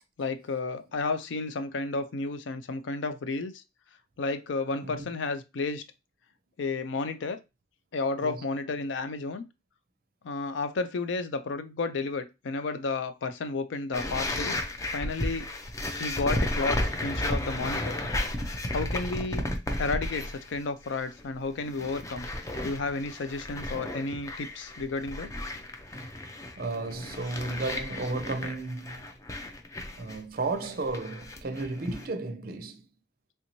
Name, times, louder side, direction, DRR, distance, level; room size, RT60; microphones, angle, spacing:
voice 1, 0.2-3.6 4.2-5.8 6.6-7.4 7.9-9.4 10.2-14.6 14.9-15.5 16.0-18.0 18.7-19.4 19.8-22.3 22.6-25.3, left 3 dB, 90° left, 0.4 m, -32 dB
voice 2, 4.8-5.1 8.2-8.4 26.0-26.1 26.6-29.1 30.0-32.8, right 3 dB, 55° right, 0.5 m, -33 dB
sound 1, 13.9-20.6 20.8-21.2 21.6-32.1, left 1 dB, 15° left, 0.4 m, -33 dB
3.3 x 2.7 x 2.9 m
head